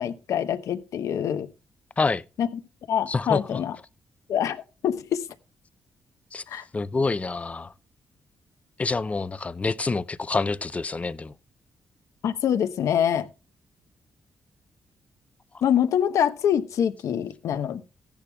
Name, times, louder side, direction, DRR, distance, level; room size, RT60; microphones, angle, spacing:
voice 1, 0.0-1.5 2.4-2.5 2.9-3.8 4.3-5.3 6.5-6.6 12.2-13.3 15.6-17.8, left 9 dB, 75° left, 1.0 m, -25 dB
voice 2, 3.1-3.6 6.3-6.4 6.7-7.7 8.8-11.3, left 3 dB, 25° left, 0.5 m, -27 dB
15.5 x 10.5 x 2.3 m
cardioid pair, 95°, 5 cm